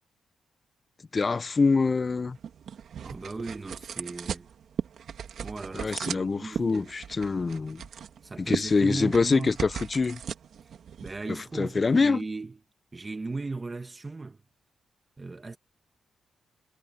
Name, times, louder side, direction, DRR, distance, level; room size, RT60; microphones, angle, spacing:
voice 1, 1.1-2.4 5.7-7.8 8.4-10.2 11.3-12.2, left 4 dB, 30° left, 0.4 m, -25 dB
sound 1, 1.9-12.1, right 8 dB, 70° right, 2.2 m, -38 dB
voice 2, 3.0-4.5 5.4-6.9 8.2-9.5 11.0-12.6 12.9-14.4 15.2-15.6, right 3 dB, 25° right, 1.4 m, -37 dB
cardioid pair, 115°, 0 cm